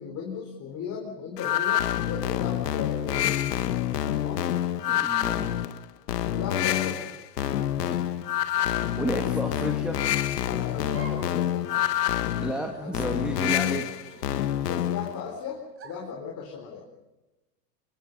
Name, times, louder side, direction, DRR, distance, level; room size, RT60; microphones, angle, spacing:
voice 1, 0.0-3.7 4.1-4.4 6.3-7.1 10.5-12.3 12.7-12.9 14.7-16.8, left 6 dB, 35° left, 0 dB, 4.1 m, -37 dB
sound 1, 1.4-15.2, left 12 dB, 80° left, 1.4 m, -27 dB
voice 2, 4.9-5.5 9.0-10.0 12.4-13.9, equal, ahead, 3 dB, 1.8 m, -31 dB
sound 2, 6.8-7.2 7.9-8.0 9.1-9.5 10.8-11.3 11.7-11.8 12.6-13.1 14.0-14.9 15.8-16.2, right 2 dB, 30° right, 5.8 m, -48 dB
25.5 x 23.5 x 5.4 m, 1.1 s
hypercardioid pair, 110°, 47 cm